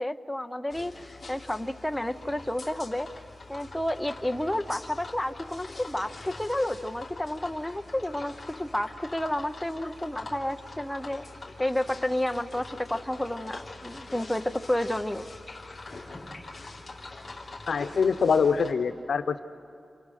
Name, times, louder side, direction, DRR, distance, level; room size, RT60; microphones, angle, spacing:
voice 1, 0.0-3.1 3.5-11.2 11.6-15.3, left 1 dB, 5° left, 7 dB, 0.6 m, -31 dB
sound 1, 0.7-18.7, left 2 dB, 25° left, 3.0 m, -44 dB
voice 2, 17.7-19.4, left 5 dB, 80° left, 10 dB, 0.8 m, -24 dB
29.0 x 28.0 x 6.5 m, 2.4 s
wide cardioid pair, 170°, 0 cm